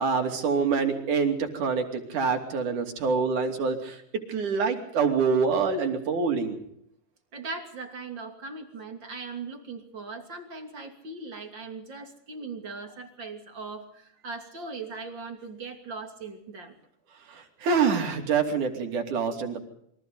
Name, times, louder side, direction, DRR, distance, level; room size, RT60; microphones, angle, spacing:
voice 1, 0.0-6.6 17.3-19.7, right 5 dB, 70° right, 4 dB, 4.2 m, -26 dB
voice 2, 7.3-16.7, right 4 dB, 35° right, 4 dB, 3.3 m, -39 dB
28.5 x 24.0 x 3.9 m, 0.71 s
omnidirectional pair, 3.8 m